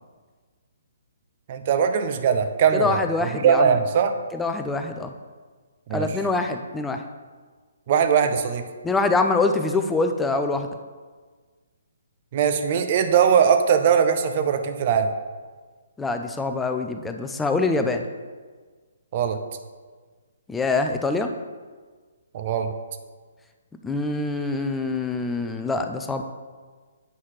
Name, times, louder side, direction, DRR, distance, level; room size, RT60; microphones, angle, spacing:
voice 1, 1.5-4.1 5.9-6.1 7.9-8.6 12.3-15.1 19.1-19.4 22.3-22.7, right 7 dB, 40° right, 8 dB, 0.5 m, -20 dB
voice 2, 2.7-3.8 4.3-5.1 5.9-7.0 8.8-10.7 16.0-18.1 20.5-21.3 23.8-26.2, left 3 dB, 5° left, 5 dB, 0.4 m, -24 dB
8.0 x 5.5 x 3.1 m, 1.5 s
figure-of-eight pair, 130°, 0 cm